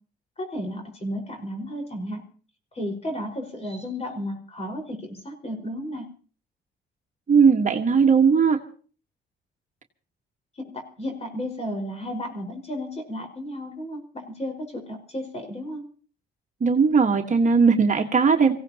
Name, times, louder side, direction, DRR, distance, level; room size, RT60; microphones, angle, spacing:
voice 1, 0.4-2.2 2.7-6.1 10.6-15.8, equal, 30° left, 4 dB, 4.9 m, -33 dB
voice 2, 7.3-8.6 16.6-18.5, right 5 dB, 40° right, 4 dB, 1.4 m, -18 dB
25.5 x 16.5 x 2.9 m, 0.41 s
cardioid pair, 90°, 20 cm